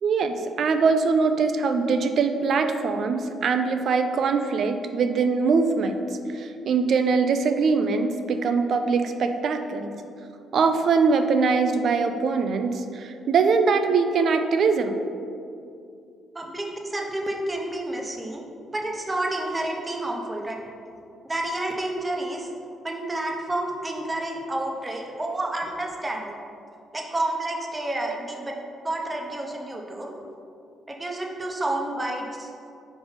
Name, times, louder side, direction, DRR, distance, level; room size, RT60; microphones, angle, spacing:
voice 1, 0.0-6.0 6.3-9.9 10.5-14.9 28.1-28.2, right 4 dB, 60° right, 7 dB, 0.4 m, -22 dB
voice 2, 16.3-18.4 18.7-20.6 21.2-22.5 22.8-26.4 26.9-28.5 28.8-30.1 30.9-32.5, right 1 dB, 20° right, 0 dB, 0.9 m, -30 dB
4.6 x 4.1 x 5.2 m, 2.5 s
cardioid pair, 90°, 0 cm